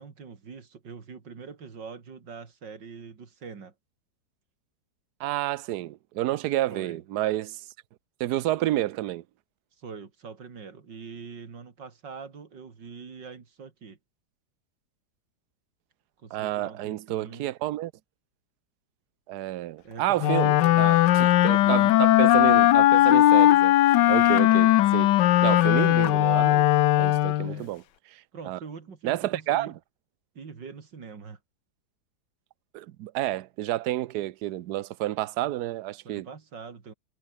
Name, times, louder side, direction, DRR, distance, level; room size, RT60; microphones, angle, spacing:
voice 1, 0.0-3.7 6.7-7.0 9.8-14.0 16.2-17.5 19.8-20.9 21.6-21.9 27.4-27.7 28.3-29.7 30.3-31.4 36.0-36.9, right 5 dB, 90° right, 3.2 m, -43 dB
voice 2, 5.2-7.6 8.2-9.2 16.3-17.9 19.3-23.8 24.1-25.2 25.4-26.7 27.0-27.8 28.1-28.6 29.0-29.8 32.7-36.3, right 14 dB, 70° right, 1.2 m, -30 dB
Wind instrument woodwind instrument, 20.2-27.6, left 14 dB, 80° left, 1.3 m, -19 dB
omnidirectional pair, 1.9 m